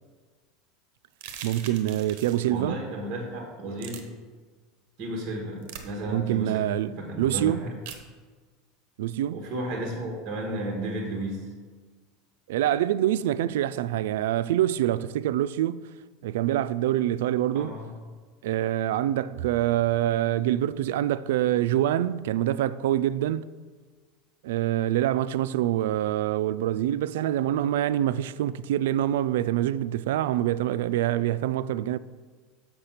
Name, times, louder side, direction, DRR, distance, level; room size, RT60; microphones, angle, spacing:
sound 1, 1.1-2.5 3.8-4.0 5.6-5.9 7.9-8.0, right 8 dB, 55° right, 0.9 m, -41 dB
voice 1, 1.4-2.8 6.1-7.6 9.0-9.4 12.5-15.9 16.2-17.7 18.4-23.5 24.4-32.0, right 12 dB, 85° right, 0.3 m, -25 dB
voice 2, 2.5-4.0 5.0-7.7 9.3-11.5 17.5-17.9, right 1 dB, 30° right, 1.3 m, -33 dB
6.8 x 6.4 x 5.7 m
supercardioid pair, 170°, 0 cm